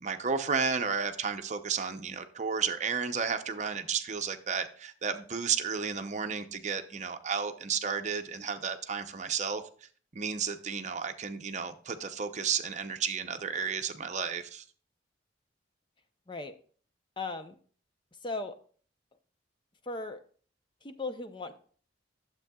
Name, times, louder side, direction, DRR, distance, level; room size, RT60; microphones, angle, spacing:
voice 1, 0.0-9.6 10.1-14.6, right 6 dB, 40° right, 0.7 m, -32 dB
voice 2, 17.2-17.6 18.2-18.6 19.8-20.2 20.8-21.6, left 3 dB, 25° left, 0.6 m, -37 dB
12.0 x 7.5 x 2.3 m
head